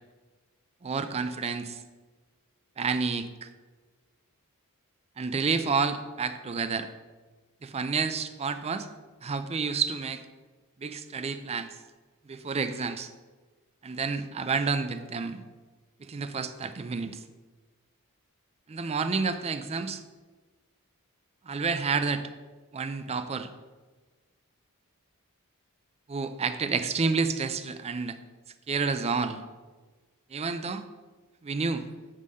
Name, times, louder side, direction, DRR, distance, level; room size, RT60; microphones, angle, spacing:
voice 1, 0.8-1.8 2.8-3.5 5.2-6.9 7.6-8.9 9.2-10.2 10.8-11.7 12.3-13.1 13.8-15.4 16.0-17.2 18.7-20.0 21.5-22.2 22.7-23.5 26.1-28.2 28.7-29.4 30.3-30.8 31.4-31.9, right 4 dB, 30° right, 10 dB, 0.4 m, -29 dB
8.1 x 3.7 x 6.3 m, 1.3 s
head